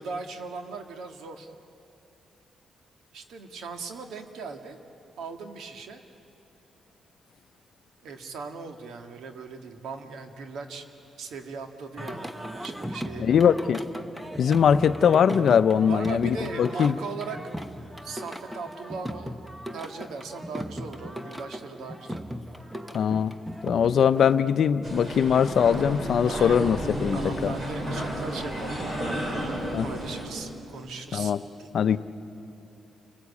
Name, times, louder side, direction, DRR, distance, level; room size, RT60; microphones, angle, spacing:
voice 1, 0.0-1.5 3.1-4.8 5.2-6.0 8.0-10.9 11.2-13.5 15.8-17.4 18.0-22.2 26.2-26.7 27.1-29.2 29.8-31.3 31.6-31.7, right 4 dB, 85° right, 5 dB, 1.9 m, -38 dB
Singing, 12.0-24.4, equal, 5° right, 1.1 m, -38 dB
voice 2, 13.2-13.8 14.4-17.0 22.9-23.3 23.6-27.5 29.7-29.9 31.1-31.4 31.7-32.0, left 7 dB, 65° left, 13 dB, 0.7 m, -21 dB
sound 1, 24.8-30.3, right 1 dB, 35° right, 6.0 m, -32 dB
29.0 x 19.5 x 8.4 m, 2.9 s
cardioid pair, 110°, 0 cm